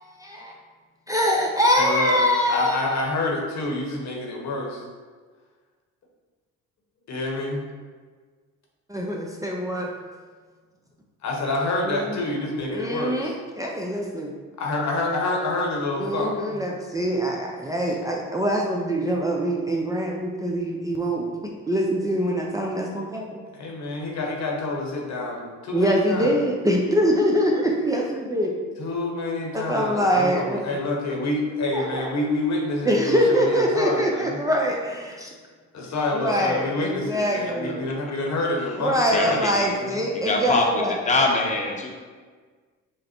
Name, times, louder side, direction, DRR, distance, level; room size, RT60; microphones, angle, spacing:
voice 1, 0.2-0.5 1.1-3.0 8.9-9.9 11.8-12.2 12.7-14.3 16.0-21.3 21.7-23.4 25.7-28.5 29.5-30.6 31.7-32.1 32.8-35.3 36.1-37.8 38.8-40.9, equal, 10° right, -2 dB, 0.5 m, -24 dB
voice 2, 1.7-2.2 2.5-4.8 7.1-7.6 11.2-13.3 14.6-16.6 23.5-26.3 28.8-34.4 35.7-40.0, left 2 dB, 60° left, -1 dB, 1.1 m, -27 dB
voice 3, 39.1-39.7 40.1-41.9, left 2 dB, 25° left, 0 dB, 0.8 m, -24 dB
5.2 x 2.1 x 4.3 m, 1.5 s
cardioid pair, 90°, 31 cm